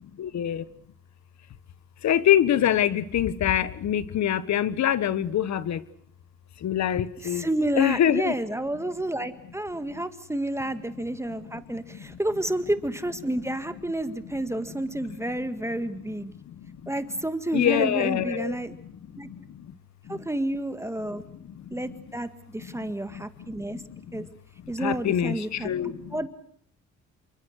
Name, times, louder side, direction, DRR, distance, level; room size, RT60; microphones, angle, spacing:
voice 1, 0.2-0.6 2.0-5.8 6.6-7.4 7.8-8.3 17.5-18.6 24.8-25.9, left 10 dB, 65° left, 16 dB, 1.4 m, -24 dB
voice 2, 7.2-16.3 16.9-18.8 19.2-19.3 20.1-21.2 21.7-23.8 24.1-24.3 24.7-25.7 26.1-26.3, right 1 dB, 10° right, 10 dB, 1.7 m, -30 dB
28.5 x 23.5 x 6.6 m, 0.64 s
cardioid pair, 90°, 30 cm